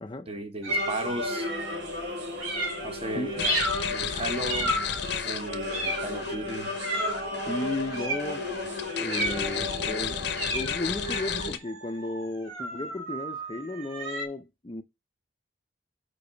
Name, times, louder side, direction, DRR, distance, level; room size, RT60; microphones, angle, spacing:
voice 1, 0.3-1.5 2.8-3.6 3.9-4.8 5.2-6.8, right 1 dB, 30° right, 0.8 m, -35 dB
sound 1, 0.6-1.8 2.4-2.9 3.4-3.9 4.5-5.1 5.7-6.2 6.8-7.3 7.9-8.3 9.1-9.6 10.3-14.3, right 1 dB, 90° right, 2.3 m, -32 dB
sound 2, 0.7-11.5, left 1 dB, 60° right, 1.8 m, -35 dB
voice 2, 3.1-3.4 7.5-8.6 9.0-14.8, left 2 dB, 25° left, 0.5 m, -34 dB
sound 3, 3.4-11.6, left 8 dB, 55° left, 0.7 m, -34 dB
5.5 x 4.6 x 5.1 m
head